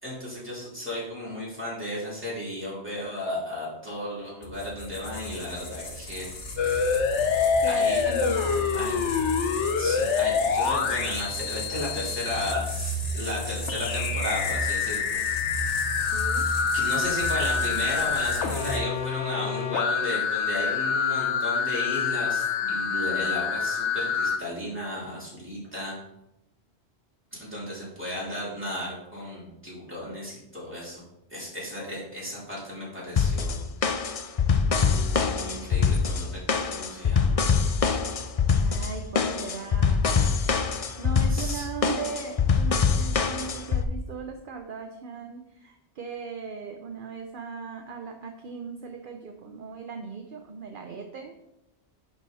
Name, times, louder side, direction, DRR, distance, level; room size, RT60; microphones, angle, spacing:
voice 1, 0.0-6.3 6.6-6.8 7.6-8.4 8.7-9.1 9.8-15.0 16.7-26.0 27.3-31.0 31.3-33.6 33.9-34.1 34.6-37.6 41.3-41.7, left 1 dB, 10° right, -7 dB, 3.6 m, -34 dB
sound 1, 4.4-18.8, left 1 dB, 65° left, 1.5 m, -34 dB
sound 2, 6.6-12.5 13.7-24.4, left 6 dB, 85° left, 1.1 m, -26 dB
voice 2, 7.6-8.7 16.1-16.5 38.6-40.3 41.0-51.4, right 5 dB, 55° right, 5 dB, 0.8 m, -38 dB
sound 3, 33.2-43.8, left 5 dB, 45° left, 0.5 m, -24 dB
11.0 x 4.7 x 4.1 m, 0.86 s
omnidirectional pair, 1.2 m